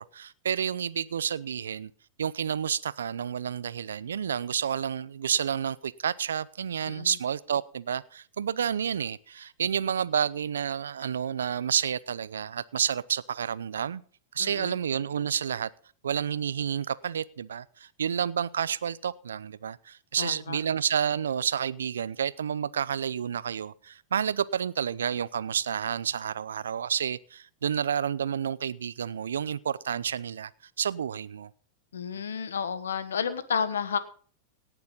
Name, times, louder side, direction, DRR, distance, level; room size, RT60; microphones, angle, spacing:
voice 1, 0.0-1.9 2.2-14.0 14.3-15.7 16.0-30.5 30.8-31.5, right 8 dB, 80° right, 0.6 m, -30 dB
voice 2, 14.4-14.8 20.2-20.6 31.9-34.0, left 7 dB, 85° left, 1.3 m, -31 dB
18.0 x 6.9 x 5.4 m
hypercardioid pair, 100°, 0 cm